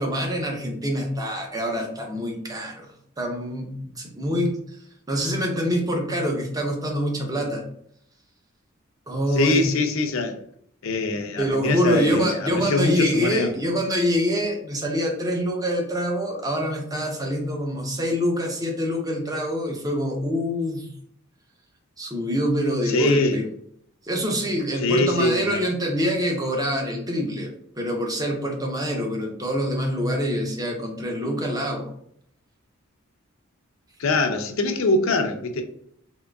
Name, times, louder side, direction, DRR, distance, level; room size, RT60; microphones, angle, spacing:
voice 1, 0.0-4.6 5.1-7.6 9.1-9.6 11.4-20.9 22.0-23.5 24.0-31.9, equal, 20° right, 2 dB, 0.6 m, -25 dB
voice 2, 9.3-10.4 10.8-13.5 22.9-23.4 24.8-25.6 34.0-35.6, left 2 dB, 70° left, 6 dB, 0.5 m, -23 dB
3.7 x 3.0 x 2.3 m, 0.66 s
head